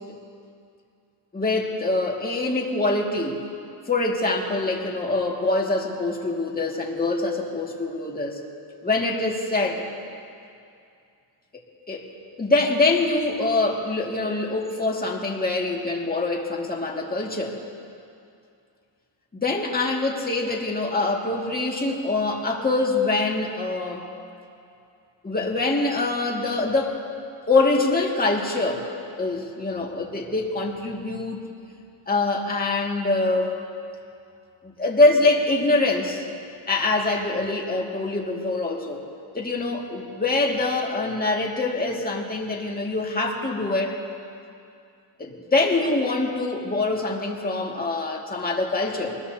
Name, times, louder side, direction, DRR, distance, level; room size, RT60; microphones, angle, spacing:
voice 1, 1.3-3.4 3.9-8.4 8.8-9.8 11.9-12.1 12.4-17.6 19.4-24.1 25.2-27.0 27.5-28.9 29.2-31.4 32.1-33.5 34.8-36.2 36.7-39.0 39.3-44.0 45.2-49.2, left 2 dB, 20° left, -1 dB, 2.0 m, -24 dB
23.0 x 20.5 x 2.8 m, 2.5 s
cardioid pair, 110°, 48 cm